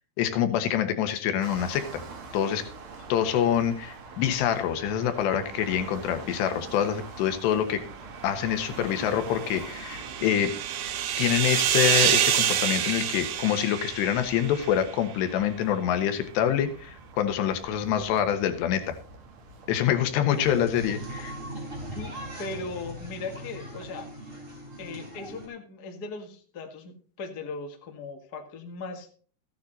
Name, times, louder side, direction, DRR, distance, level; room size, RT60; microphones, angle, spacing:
voice 1, 0.2-2.0 2.3-2.6 3.1-7.8 8.2-10.5 11.2-19.0 19.7-21.4, left 10 dB, 90° left, 8 dB, 3.4 m, -26 dB
sound 1, 1.4-20.1, right 4 dB, 55° right, 1.5 m, -45 dB
sound 2, 9.2-14.8, right 10 dB, 85° right, 1.6 m, -27 dB
voice 2, 20.0-20.4 21.9-24.1 24.8-29.1, left 4 dB, 50° left, 4 dB, 1.1 m, -38 dB
sound 3, 20.3-25.5, right 1 dB, 15° right, 4.0 m, -39 dB
14.5 x 9.6 x 4.0 m, 0.42 s
omnidirectional pair, 4.7 m